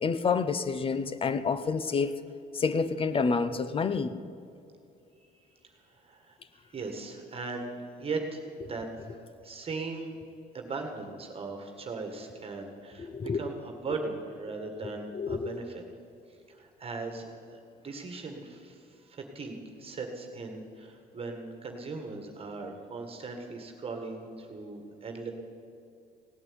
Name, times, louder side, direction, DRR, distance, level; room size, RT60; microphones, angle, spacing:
voice 1, 0.0-2.1 2.5-4.1 13.1-13.4 15.1-15.5, left 5 dB, 35° left, 14 dB, 0.8 m, -28 dB
voice 2, 5.9-6.4 6.7-8.9 9.4-10.1 10.5-15.8 16.3-25.3, right 3 dB, 35° right, 4 dB, 1.9 m, -39 dB
17.0 x 8.8 x 8.9 m, 2.6 s
cardioid pair, 110°, 17 cm